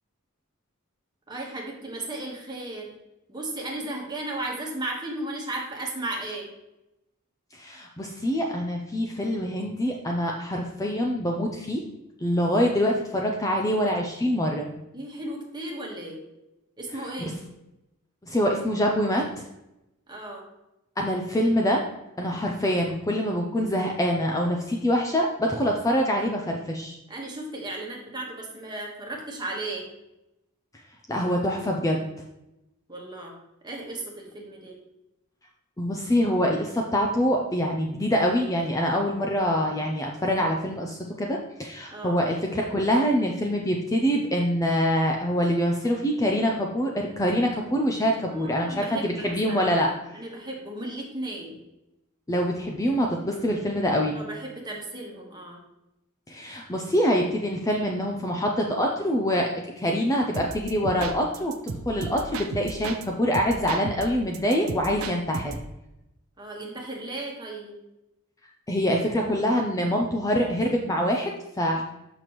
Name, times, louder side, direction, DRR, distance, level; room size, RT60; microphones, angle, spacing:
voice 1, 1.3-2.9 3.3-6.5 14.9-16.2 16.8-17.3 20.1-20.4 27.1-29.8 32.9-33.3 33.6-34.8 41.9-42.2 48.3-49.7 50.1-51.6 54.1-55.6 66.4-67.8, right 2 dB, 20° right, -1 dB, 1.3 m, -35 dB
voice 2, 7.5-11.8 12.2-14.7 17.0-17.1 18.2-19.4 21.0-21.8 22.2-27.0 31.1-32.0 35.8-49.9 52.3-54.2 56.3-59.5 59.8-61.5 61.9-65.6 68.7-71.8, equal, 15° left, 1 dB, 0.5 m, -25 dB
sound 1, 60.3-63.1 63.3-65.7, right 3 dB, 65° right, 0.5 m, -35 dB
6.8 x 5.9 x 3.0 m, 0.91 s
head